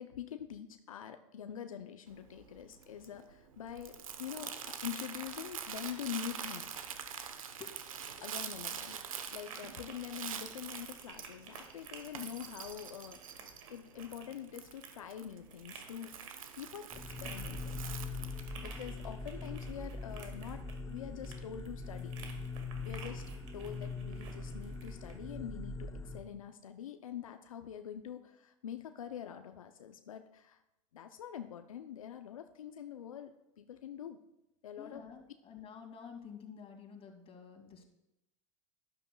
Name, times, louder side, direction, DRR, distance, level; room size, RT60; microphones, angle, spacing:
voice 1, 0.0-6.7 8.2-16.2 16.5-17.8 18.6-22.2 22.8-30.6 30.9-34.2 34.6-35.1, left 9 dB, 90° left, 8 dB, 0.6 m, -45 dB
Crumpling crinkling, 2.1-18.5, right 7 dB, 90° right, 0.9 m, -45 dB
sound 1, 8.0-25.2, right 6 dB, 70° right, 1.9 m, -54 dB
sound 2, 16.9-26.2, left 3 dB, 15° left, 0.9 m, -42 dB
voice 2, 34.8-37.9, left 7 dB, 35° left, 2 dB, 2.3 m, -50 dB
12.0 x 12.0 x 2.3 m, 0.87 s
hypercardioid pair, 90°, 17 cm